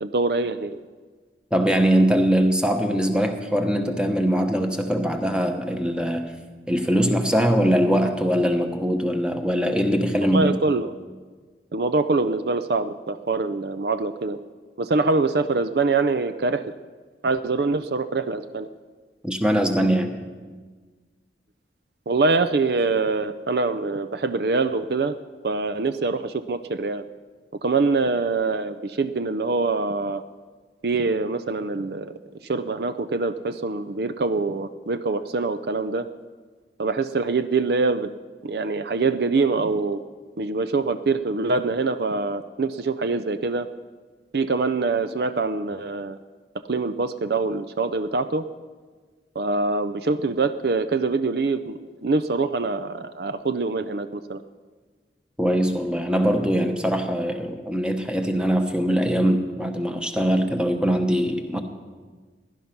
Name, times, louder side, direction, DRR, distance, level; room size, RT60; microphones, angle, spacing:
voice 1, 0.0-0.8 10.3-10.9 11.7-14.4 14.8-16.6 17.2-18.7 22.1-25.1 25.4-27.0 27.6-30.2 30.8-32.1 32.5-36.1 36.8-38.1 38.4-40.0 40.4-43.7 44.3-46.2 46.7-48.4 49.4-54.4, right 3 dB, 60° right, 11 dB, 0.5 m, -24 dB
voice 2, 1.5-6.3 6.7-10.6 19.2-20.1 55.4-61.6, equal, 5° right, 5 dB, 1.0 m, -22 dB
16.5 x 11.0 x 5.9 m, 1.4 s
head